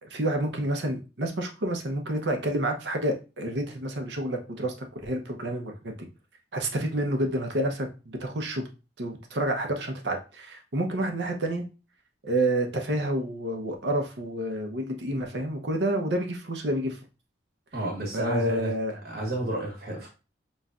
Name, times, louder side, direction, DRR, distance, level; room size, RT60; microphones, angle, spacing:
voice 1, 0.0-6.1 6.5-8.7 9.0-11.6 12.2-17.0 18.1-19.0, right 1 dB, 75° right, 4 dB, 0.8 m, -29 dB
voice 2, 17.7-18.7 19.0-20.1, right 1 dB, 60° right, -1 dB, 1.2 m, -31 dB
5.5 x 3.1 x 2.4 m, 0.31 s
head